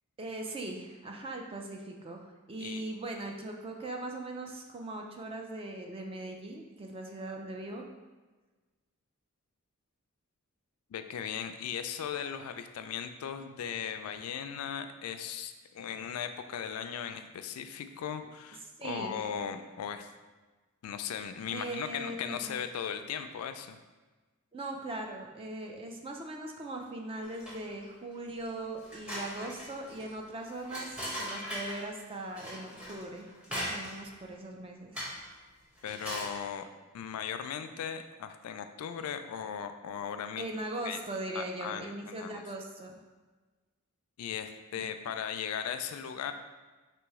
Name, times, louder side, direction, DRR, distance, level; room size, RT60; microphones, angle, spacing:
voice 1, 0.2-7.8 18.8-19.2 21.5-22.6 24.5-35.0 40.4-43.0 44.8-44.9, right 2 dB, 25° right, 2 dB, 0.4 m, -40 dB
voice 2, 10.9-20.1 20.8-23.8 35.8-36.7 36.9-40.5 40.8-41.0 41.3-42.4 44.2-46.3, left 8 dB, 85° left, 8 dB, 0.3 m, -38 dB
sound 1, 27.2-27.8 28.3-28.4 28.8-31.9 32.3-34.1 34.9-35.3 35.8-36.4, equal, 5° right, 0.8 m, -40 dB
3.1 x 3.0 x 4.6 m, 1.3 s
head